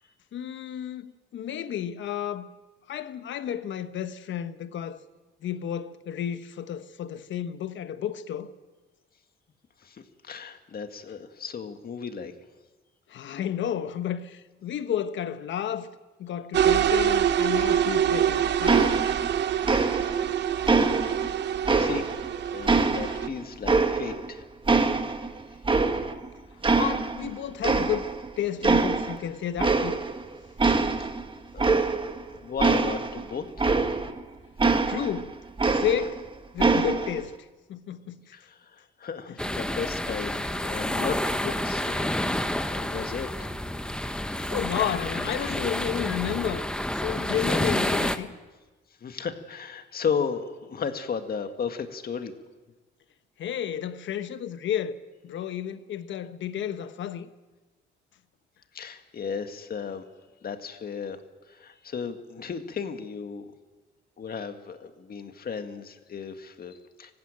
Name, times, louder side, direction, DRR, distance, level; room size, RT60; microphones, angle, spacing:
voice 1, 0.3-2.5 2.9-5.0 5.4-8.5 13.1-15.9 16.2-18.9 26.7-28.1 28.4-30.0 34.9-35.4 35.7-36.3 36.5-38.3 39.3-39.4 44.0-44.1 44.5-46.7 46.9-48.3 53.4-55.0 55.2-57.3, left 9 dB, 70° left, 1.2 m, -32 dB
voice 2, 9.8-12.3 21.2-21.5 21.8-22.1 22.5-24.4 31.5-31.9 32.2-33.7 36.8-36.9 38.3-42.1 42.4-43.5 45.5-45.6 49.0-52.3 58.7-60.0 60.4-61.2 61.5-63.5 64.2-67.1, left 6 dB, 50° left, 1.9 m, -35 dB
sound 1, 16.5-23.3, right 9 dB, 60° right, 0.8 m, -25 dB
sound 2, 18.7-19.4 19.6-20.3 20.7-22.3 22.7-24.3 24.7-26.3 26.6-27.3 27.6-28.3 28.6-29.2 29.6-30.2 30.6-34.2 34.6-36.2 36.6-37.2, right 3 dB, 25° right, 1.5 m, -24 dB
sound 3, 39.4-48.2, left 1 dB, 5° left, 1.1 m, -29 dB
19.5 x 15.5 x 8.9 m
cardioid pair, 90°, 20 cm